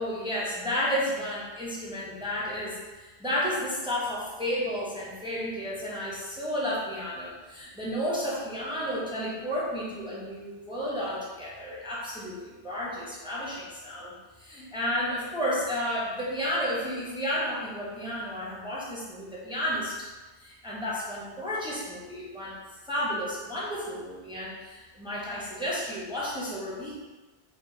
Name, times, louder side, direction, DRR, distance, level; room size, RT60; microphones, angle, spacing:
voice 1, 0.0-14.1 14.4-19.9 20.4-22.6 22.9-27.0, equal, 5° right, -6 dB, 0.8 m, -32 dB
5.0 x 2.6 x 2.7 m, 1.2 s
omnidirectional pair, 1.2 m